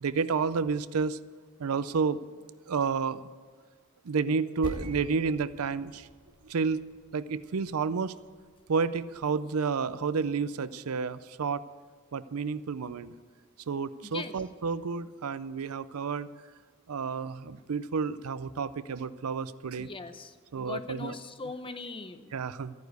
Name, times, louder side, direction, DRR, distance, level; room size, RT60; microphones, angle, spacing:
voice 1, 0.0-1.2 1.6-2.2 2.7-3.2 4.0-6.1 6.4-6.9 7.1-8.1 8.7-11.6 12.1-13.1 13.7-16.3 16.9-19.9 20.5-21.1 22.3-22.7, right 5 dB, 80° right, 16 dB, 0.5 m, -30 dB
Percussion, 4.6-9.5, equal, 40° left, 2.4 m, -46 dB
voice 2, 14.0-14.4 19.8-22.4, left 4 dB, 25° left, 10 dB, 0.7 m, -40 dB
13.5 x 9.5 x 8.1 m, 1.5 s
head